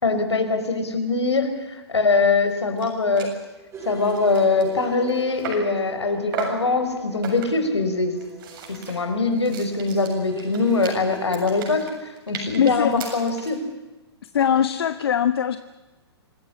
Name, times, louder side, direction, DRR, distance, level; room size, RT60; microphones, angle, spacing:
voice 1, 0.0-3.3 3.8-8.1 8.7-13.6, left 3 dB, 85° left, 7 dB, 4.9 m, -22 dB
sound 1, 2.5-2.6 2.8-2.9 3.2-3.4 3.8-5.8 6.3-6.7 7.2-7.7 8.2-13.6, right 6 dB, 55° right, 7.5 m, -36 dB
sound 2, 3.7-11.5, right 4 dB, 20° right, 5.0 m, -40 dB
voice 2, 12.6-12.9 14.2-15.6, left 9 dB, 65° left, 10 dB, 1.3 m, -21 dB
26.5 x 15.0 x 9.8 m, 1.1 s
hypercardioid pair, 120°, 14 cm